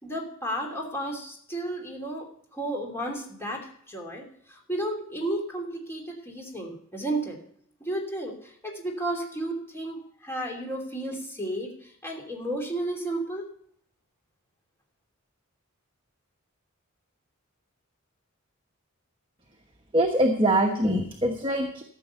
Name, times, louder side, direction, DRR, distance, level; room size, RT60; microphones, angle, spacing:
voice 1, 0.0-2.3 2.5-4.2 4.5-7.4 7.8-13.4, right 1 dB, 10° left, 0 dB, 2.9 m, -33 dB
voice 2, 19.9-21.8, right 1 dB, 25° right, 2 dB, 1.1 m, -23 dB
14.0 x 6.9 x 6.9 m, 0.66 s
head